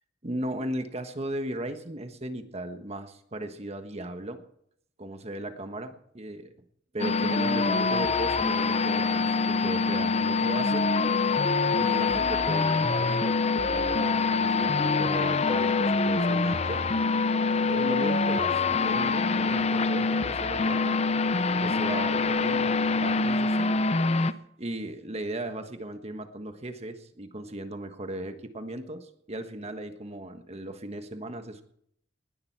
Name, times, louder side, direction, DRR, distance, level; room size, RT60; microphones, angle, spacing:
voice 1, 0.2-4.4 5.0-6.5 6.9-10.9 11.8-16.8 17.7-21.0 21.6-23.8 24.6-31.6, right 1 dB, 35° right, 7 dB, 1.4 m, -36 dB
sound 1, 7.0-24.3, left 4 dB, 35° left, 0.6 m, -25 dB
19.5 x 11.5 x 4.7 m, 0.69 s
head